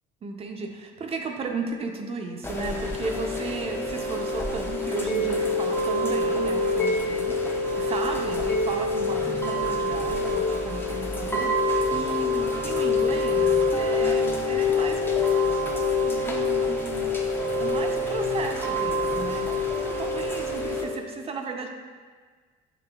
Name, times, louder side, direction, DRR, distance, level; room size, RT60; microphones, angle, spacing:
voice 1, 0.2-17.1 17.6-21.7, right 4 dB, 35° right, 3 dB, 0.5 m, -35 dB
Chime / Rain, 2.4-20.8, left 2 dB, 15° left, 0.5 m, -26 dB
6.8 x 3.2 x 2.3 m, 1.5 s
cardioid pair, 110°, 17 cm